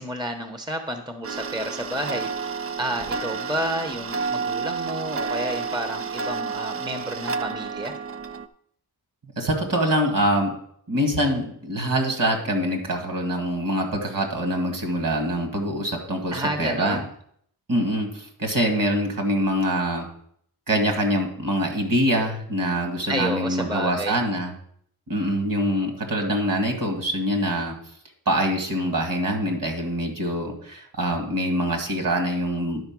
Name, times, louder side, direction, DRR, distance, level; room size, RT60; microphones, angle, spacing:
voice 1, 0.0-2.3 2.8-7.9 16.3-17.1 23.1-24.1, right 1 dB, 10° right, 6 dB, 0.9 m, -30 dB
Tick-tock, 1.2-8.5, right 5 dB, 35° right, 0.5 m, -30 dB
voice 2, 9.2-10.6 10.9-17.0 17.7-20.1 20.7-24.5 25.1-27.7 28.3-32.9, right 1 dB, 55° right, 2 dB, 2.2 m, -24 dB
11.0 x 4.5 x 6.1 m, 0.65 s
wide cardioid pair, 80°, 39 cm